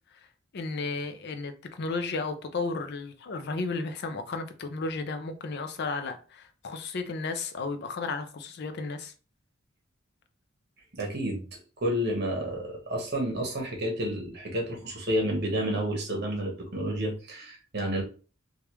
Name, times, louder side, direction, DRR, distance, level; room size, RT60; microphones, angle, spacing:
voice 1, 0.5-9.1, left 3 dB, 55° left, 0.5 m, -33 dB
voice 2, 10.9-11.4 11.8-18.0, equal, 55° right, 1.1 m, -30 dB
3.3 x 2.4 x 2.9 m
head